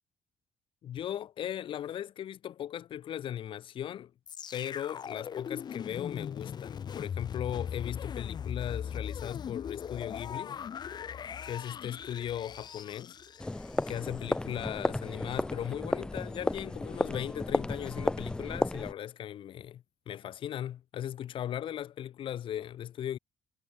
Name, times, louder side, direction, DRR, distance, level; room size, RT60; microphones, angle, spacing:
voice 1, 0.8-4.1 4.5-10.6 11.4-13.2 13.9-23.2, left 10 dB, 65° left, 1.9 m, -38 dB
sound 1, 4.3-14.3 14.9-15.0, left 8 dB, 50° left, 2.5 m, -39 dB
sound 2, 13.4-18.9, left 2 dB, 10° left, 0.3 m, -33 dB
cardioid pair, 115°, 9 cm